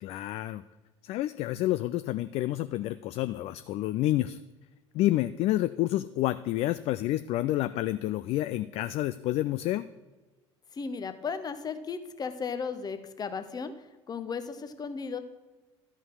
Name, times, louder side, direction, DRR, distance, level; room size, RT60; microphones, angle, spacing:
voice 1, 0.0-0.6 1.0-4.4 4.9-9.8, left 15 dB, 45° left, 13 dB, 0.4 m, -29 dB
voice 2, 10.7-13.7 14.1-15.2, left 5 dB, 25° left, 10 dB, 1.0 m, -35 dB
12.5 x 5.5 x 6.3 m, 1.2 s
figure-of-eight pair, 65°, 15 cm